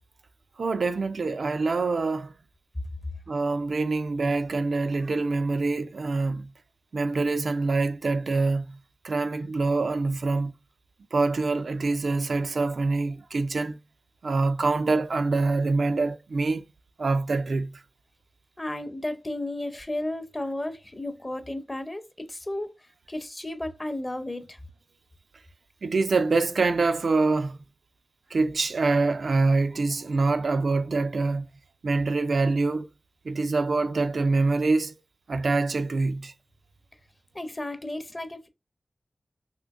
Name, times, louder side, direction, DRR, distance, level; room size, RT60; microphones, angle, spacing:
voice 1, 0.6-2.3 3.3-6.5 6.9-8.8 9.0-10.5 11.1-13.8 14.2-16.7 17.0-17.8 25.8-27.6 28.3-31.5 31.8-32.9 33.2-34.9 35.3-36.3, right 3 dB, 80° right, 0.3 m, -25 dB
voice 2, 18.6-22.7 23.1-24.6 37.3-38.5, left 1 dB, 25° left, 0.6 m, -33 dB
3.7 x 2.9 x 2.4 m
wide cardioid pair, 65°, 0 cm